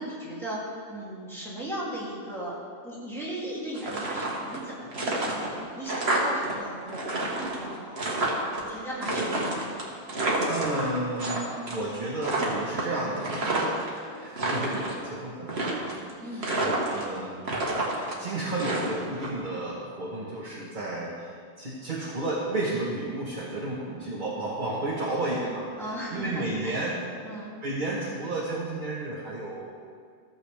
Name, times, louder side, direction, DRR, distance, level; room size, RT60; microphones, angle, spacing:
voice 1, 0.0-2.6 2.8-8.0 8.7-9.8 13.4-13.8 16.2-16.6 25.8-26.9 27.2-27.5, right 1 dB, ahead, -8 dB, 2.6 m, -37 dB
sound 1, 3.7-4.6 4.9-6.5 6.8-8.6 9.0-11.4 11.7-12.0 12.2-13.9 14.3-15.0 15.5-16.1 16.4-17.2 17.4-19.3, right 2 dB, 65° right, 1.8 m, -29 dB
voice 2, 10.5-15.9 16.2-16.6 16.8-17.4 18.2-27.0 27.6-29.7, right 2 dB, 45° right, -5 dB, 1.4 m, -32 dB
14.5 x 7.4 x 3.4 m, 2.1 s
omnidirectional pair, 1.2 m